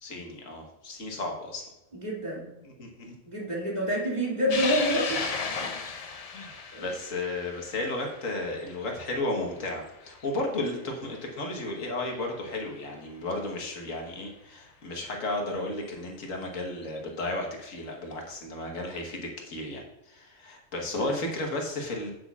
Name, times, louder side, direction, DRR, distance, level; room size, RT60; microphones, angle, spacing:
voice 1, 0.0-1.7 2.6-3.2 6.3-22.1, left 2 dB, 90° left, 1 dB, 1.7 m, -34 dB
voice 2, 1.9-2.5 3.3-5.2 5.6-5.7 6.7-6.9 20.9-21.1, equal, 35° right, -5 dB, 2.6 m, -28 dB
sound 1, 4.5-11.2 11.6-11.7 13.0-13.1 15.2-15.3 16.7-17.0, left 5 dB, 45° left, 0.5 m, -35 dB
8.5 x 8.2 x 2.4 m, 0.93 s
omnidirectional pair, 1.3 m